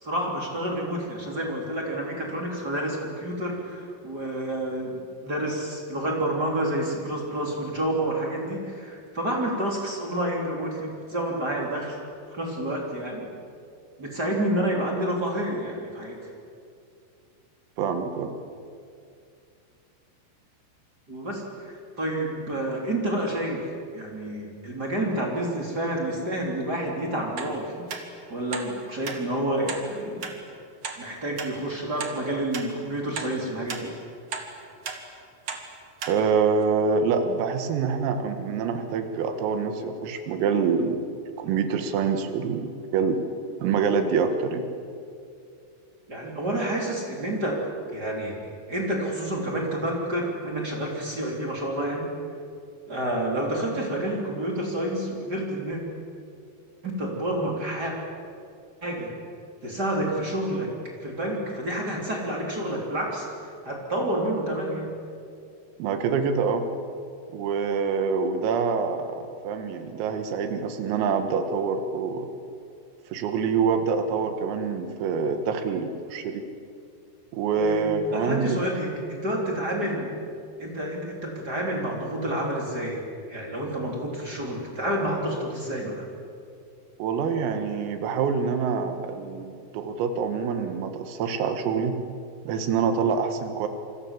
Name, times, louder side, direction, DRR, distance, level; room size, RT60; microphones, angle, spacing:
voice 1, 0.0-12.0 12.3-13.3 14.0-16.2 21.1-27.9 28.3-30.3 31.0-33.9 46.1-47.6 47.9-52.1 52.9-55.8 56.8-57.9 58.8-59.1 59.6-60.7 61.0-63.3 63.6-64.9 77.5-80.1 80.6-83.0 83.3-86.0, right 1 dB, 20° right, -1 dB, 3.2 m, -29 dB
voice 2, 17.8-18.3 36.1-41.1 41.4-43.2 43.6-44.7 65.8-66.7 67.3-72.3 73.1-76.4 77.3-78.5 87.0-91.9 92.5-93.7, right 5 dB, 80° right, 7 dB, 4.4 m, -26 dB
sound 1, 27.4-27.5 27.9-28.0 28.5-28.7 29.1-29.2 29.7-29.8 30.2-30.4 30.8-31.0 31.4-31.5 32.0-32.2 32.5-32.7 33.2-33.3 33.7-33.8 34.3-34.5 34.8-35.0 35.5-35.6 36.0-36.2 36.6-36.7, right 5 dB, 50° right, 2.0 m, -34 dB
27.5 x 25.0 x 7.6 m, 2.4 s
omnidirectional pair, 6.0 m